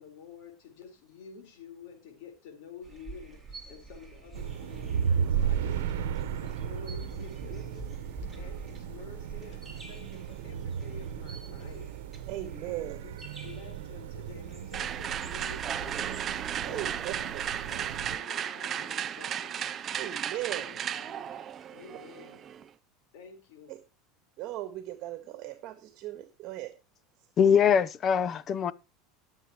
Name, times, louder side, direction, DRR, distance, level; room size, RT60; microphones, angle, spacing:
voice 1, 0.0-12.3 12.6-13.1 13.4-19.7 20.3-21.4 21.7-22.4 23.1-23.8, left 6 dB, 70° left, 4.3 m, -50 dB
sound 1, 2.8-16.3, right 4 dB, 5° right, 4.3 m, -47 dB
sound 2, 4.3-18.2, right 8 dB, 85° right, 1.0 m, -35 dB
voice 2, 12.3-13.0 16.6-17.4 20.0-20.7 23.7-23.8 24.4-26.7, right 14 dB, 50° right, 1.6 m, -38 dB
sound 3, 14.7-22.7, right 9 dB, 35° right, 0.6 m, -35 dB
voice 3, 27.4-28.7, left 7 dB, 35° left, 0.7 m, -23 dB
21.5 x 7.5 x 3.0 m
supercardioid pair, 120°, 0 cm